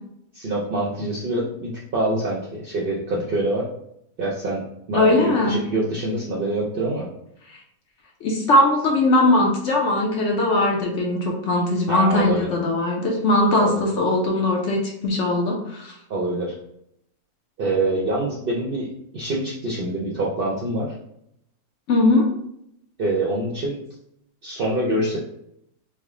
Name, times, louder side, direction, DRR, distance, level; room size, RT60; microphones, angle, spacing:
voice 1, 0.3-3.7 4.2-7.1 11.9-12.5 13.6-13.9 16.1-16.5 17.6-20.9 23.0-23.8 24.4-25.2, right 2 dB, 60° right, -4 dB, 0.6 m, -25 dB
voice 2, 4.9-5.6 7.5-7.6 8.2-15.9 21.9-22.3, left 2 dB, 65° left, 0 dB, 0.8 m, -20 dB
3.3 x 2.1 x 3.6 m, 0.76 s
omnidirectional pair, 1.5 m